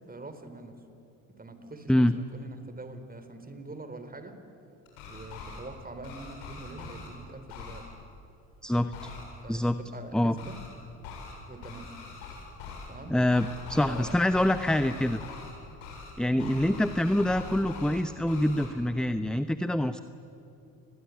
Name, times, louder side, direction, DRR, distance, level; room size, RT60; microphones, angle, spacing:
voice 1, 0.1-0.8 1.4-4.4 5.1-7.8 9.4-10.6 11.5-11.9 12.9-13.2 13.8-14.1 16.3-16.8, right 3 dB, 20° right, 9 dB, 4.1 m, -44 dB
sound 1, 4.9-5.6 6.0-7.1 7.5-7.8 8.9-9.2 10.4-10.7 11.0-11.3 11.6-12.9 13.3-15.5 15.8-16.1 16.4-18.0 18.3-18.7, left 5 dB, 85° left, 7.5 m, -43 dB
voice 2, 8.6-9.1 9.5-9.8 10.1-10.4 13.1-15.2 16.2-20.0, left 1 dB, ahead, 11 dB, 0.9 m, -25 dB
28.5 x 21.5 x 9.5 m, 2.8 s
hypercardioid pair, 65°, 39 cm